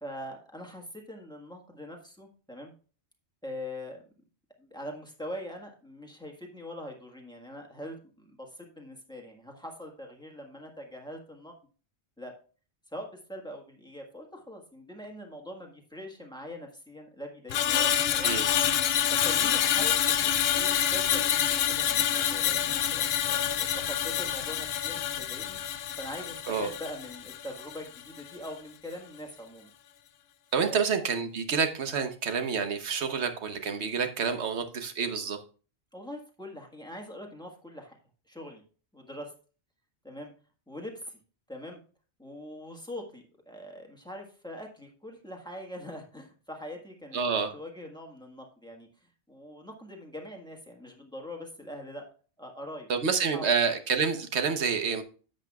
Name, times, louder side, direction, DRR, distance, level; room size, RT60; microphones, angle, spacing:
voice 1, 0.0-2.7 3.4-4.0 4.6-11.5 12.2-12.3 12.9-18.3 19.1-25.6 26.0-29.7 30.6-30.8 35.9-38.0 38.3-38.6 38.9-39.3 40.0-40.3 40.7-41.2 41.5-41.8 42.2-47.2 47.5-48.9 49.3-52.0 52.4-52.9 53.3-53.5, left 1 dB, 5° left, 1 dB, 1.5 m, -42 dB
Screech, 17.5-27.9 28.2-28.5, left 10 dB, 70° left, 0.8 m, -27 dB
voice 2, 30.5-35.4 47.1-47.5 52.9-55.0, right 6 dB, 75° right, 7 dB, 1.3 m, -28 dB
10.5 x 7.9 x 2.3 m, 0.37 s
omnidirectional pair, 1.1 m